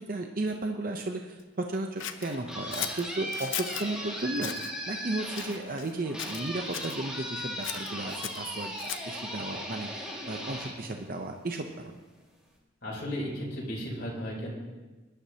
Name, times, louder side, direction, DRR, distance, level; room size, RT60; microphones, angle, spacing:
voice 1, 0.1-12.0, right 2 dB, 45° right, 4 dB, 0.7 m, -34 dB
Scissors, 2.0-3.9 4.4-4.7 5.3-5.9 6.2-7.0 7.6-9.2, left 10 dB, 85° left, 0.7 m, -37 dB
sound 1, 2.0-11.6, equal, 5° right, 2.0 m, -38 dB
voice 2, 12.8-14.5, equal, 55° left, -4 dB, 3.9 m, -34 dB
20.0 x 11.5 x 2.9 m, 1.2 s
head